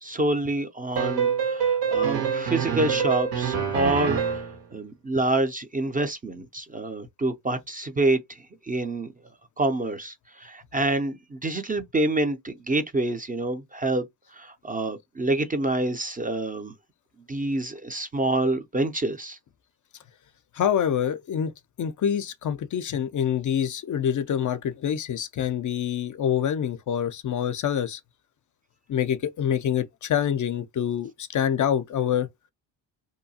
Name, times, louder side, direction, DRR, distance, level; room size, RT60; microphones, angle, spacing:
voice 1, 0.0-4.4 4.7-8.4 8.6-9.1 9.6-14.1 14.3-16.7 17.3-19.4, right 2 dB, 20° right, 0.5 m, -27 dB
sound 1, 0.9-4.6, right 7 dB, 75° right, 1.2 m, -25 dB
voice 2, 20.5-21.5 21.8-28.0 28.9-32.3, left 9 dB, 45° left, 0.5 m, -26 dB
2.8 x 2.2 x 2.7 m
supercardioid pair, 70°, 44 cm